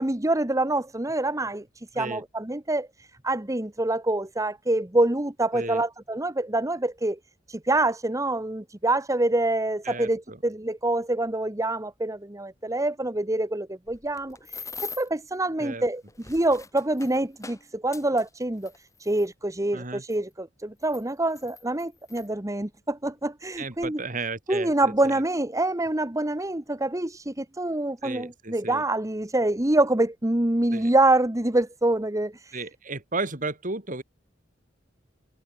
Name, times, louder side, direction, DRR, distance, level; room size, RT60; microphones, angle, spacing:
voice 1, 0.0-1.6 1.9-2.9 3.2-7.2 7.5-16.0 16.3-18.7 19.0-24.0 24.5-32.6, right 2 dB, 15° right, 1.3 m, -26 dB
voice 2, 5.5-5.8 9.8-10.4 15.6-15.8 19.7-20.0 23.6-25.2 28.0-28.8 30.7-30.9 32.5-34.0, right 3 dB, 45° right, 3.8 m, -34 dB
sound 1, 13.9-15.2 16.0-19.3 20.1-20.2 20.8-22.3 23.1-23.2 23.5-23.9, left 5 dB, 15° left, 5.8 m, -43 dB
head